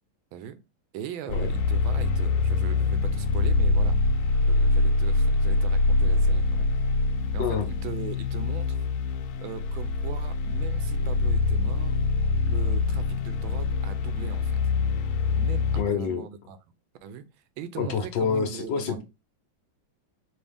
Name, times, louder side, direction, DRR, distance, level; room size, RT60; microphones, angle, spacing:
voice 1, 0.9-4.0 4.4-6.7 7.3-8.9 9.4-12.0 12.5-14.6 15.3-16.6 17.0-17.3 17.6-19.0, right 8 dB, 75° right, 1.3 m, -40 dB
sound 1, 1.3-15.8, left 3 dB, 80° left, 1.5 m, -24 dB
voice 2, 15.8-16.2 17.8-19.0, left 6 dB, 65° left, 1.3 m, -27 dB
4.3 x 2.8 x 3.4 m
omnidirectional pair, 2.3 m